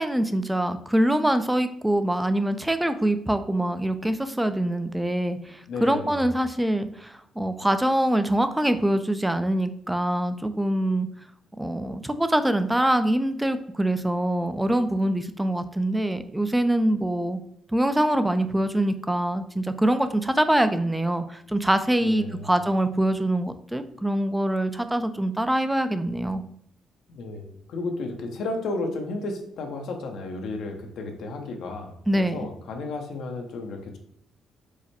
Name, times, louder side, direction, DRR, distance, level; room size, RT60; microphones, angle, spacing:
voice 1, 0.0-11.1 11.6-17.4 17.7-26.4 32.1-32.4, right 1 dB, 10° right, 10 dB, 0.4 m, -24 dB
voice 2, 5.7-6.3 22.0-22.5 27.1-34.0, left 2 dB, 75° left, 3 dB, 0.8 m, -33 dB
4.8 x 2.1 x 4.2 m, 0.70 s
cardioid pair, 90°, 0 cm